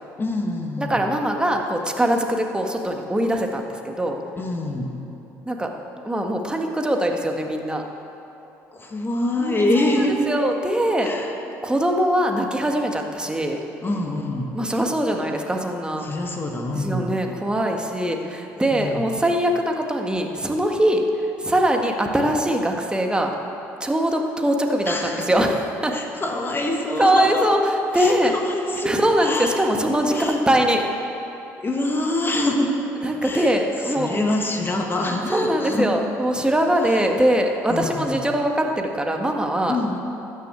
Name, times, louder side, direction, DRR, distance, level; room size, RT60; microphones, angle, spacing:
voice 1, 0.2-1.0 4.4-4.9 8.7-10.2 11.0-11.3 13.8-14.6 16.0-17.1 18.7-19.0 24.8-25.3 25.9-27.6 27.9-29.6 30.1-30.4 31.6-32.7 33.2-35.9 36.8-37.1 37.7-38.1 39.7-40.0, left 2 dB, 30° left, 2 dB, 1.7 m, -25 dB
voice 2, 0.8-4.2 5.4-5.7 6.0-7.8 9.4-11.1 11.6-13.6 14.5-16.1 16.7-21.0 21.4-23.3 23.8-25.9 27.0-27.6 27.9-28.3 28.8-30.8 33.0-34.3 35.3-39.8, right 1 dB, 10° right, 2 dB, 1.6 m, -22 dB
13.0 x 6.5 x 8.4 m, 2.9 s
hypercardioid pair, 65°, 8 cm